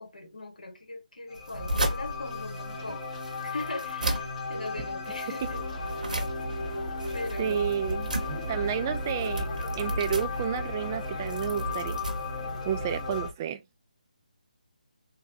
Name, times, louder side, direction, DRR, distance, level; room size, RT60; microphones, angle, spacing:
voice 1, 0.0-3.1 3.4-5.6 6.1-6.2 7.1-7.6, left 2 dB, 75° left, 1.5 m, -39 dB
sound 1, 1.3-13.3, left 4 dB, 35° left, 2.1 m, -36 dB
sound 2, 1.3-13.1, right 1 dB, 70° right, 0.9 m, -36 dB
sound 3, 5.4-13.3, right 1 dB, 20° left, 1.5 m, -37 dB
voice 2, 7.4-8.1 8.5-9.5 9.8-12.0 12.6-13.6, right 9 dB, 20° right, 0.3 m, -30 dB
3.8 x 2.2 x 2.7 m
figure-of-eight pair, 150°, 4 cm